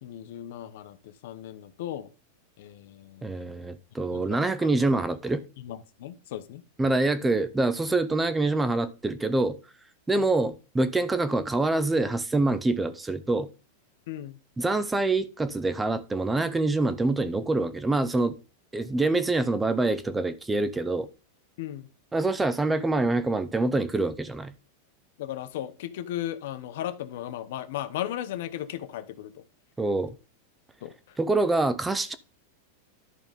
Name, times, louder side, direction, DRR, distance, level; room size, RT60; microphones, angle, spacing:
voice 1, 0.0-2.1 2.6-3.7 4.1-4.7 5.6-6.6 10.2-10.3 14.1-14.4 21.6-21.9 25.2-29.4 30.8-31.2, left 12 dB, 65° left, 0.9 m, -36 dB
voice 2, 3.2-5.4 6.8-9.6 10.1-13.5 14.6-18.4 18.7-21.1 22.1-24.5 29.8-30.1 31.2-32.1, right 2 dB, 10° right, 0.5 m, -25 dB
11.0 x 3.7 x 5.3 m
supercardioid pair, 140°, 0 cm